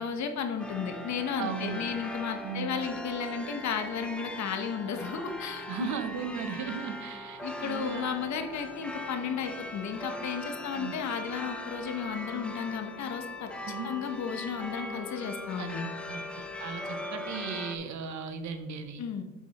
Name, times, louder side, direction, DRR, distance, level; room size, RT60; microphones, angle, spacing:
voice 1, 0.0-5.9 7.4-15.9 19.0-19.2, left 6 dB, 65° left, 7 dB, 1.0 m, -34 dB
sound 1, 0.6-17.8, left 1 dB, 5° left, 0.8 m, -40 dB
voice 2, 1.4-1.8 2.4-2.8 5.7-8.1 10.8-11.0 13.6-13.9 15.6-19.0, right 6 dB, 70° right, 9 dB, 0.9 m, -37 dB
7.3 x 4.9 x 4.1 m, 1.2 s
cardioid pair, 90°, 30 cm